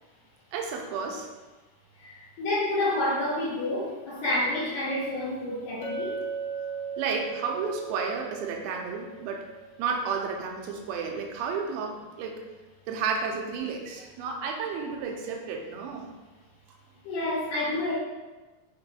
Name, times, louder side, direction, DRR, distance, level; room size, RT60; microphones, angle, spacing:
voice 1, 0.5-1.3 7.0-9.5 9.8-12.4 12.9-16.1, right 5 dB, 80° right, 2 dB, 2.2 m, -32 dB
voice 2, 2.0-6.1 17.0-17.9, left 1 dB, 65° left, -13 dB, 2.1 m, -29 dB
Chink clink, 5.8-10.1, right 5 dB, 80° left, 2.4 m, -37 dB
6.0 x 3.0 x 2.7 m, 1.2 s
omnidirectional pair, 4.8 m